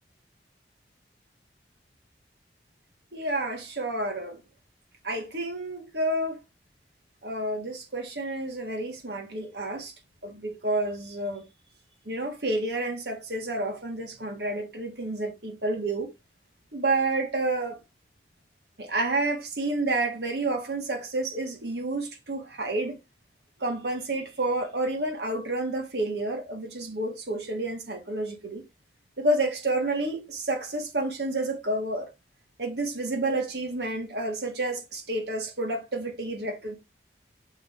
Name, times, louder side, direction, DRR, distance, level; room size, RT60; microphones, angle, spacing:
voice 1, 3.1-4.4 5.0-6.4 7.2-9.9 10.2-11.5 12.1-16.1 16.7-17.8 18.8-23.0 23.6-28.6 29.2-32.1 32.6-36.8, right 2 dB, 75° right, 1.8 m, -29 dB
6.5 x 4.6 x 3.6 m
head